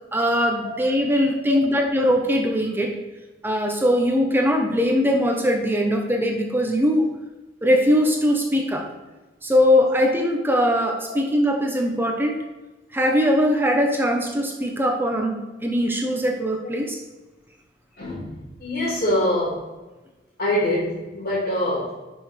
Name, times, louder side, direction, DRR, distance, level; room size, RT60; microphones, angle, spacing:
voice 1, 0.1-3.0 3.4-7.2 7.6-8.9 9.4-12.4 12.9-17.0, equal, 10° right, 2 dB, 0.9 m, -21 dB
voice 2, 18.0-19.6 20.4-21.9, left 1 dB, 55° left, -11 dB, 3.0 m, -24 dB
10.5 x 6.0 x 3.4 m, 1.1 s
head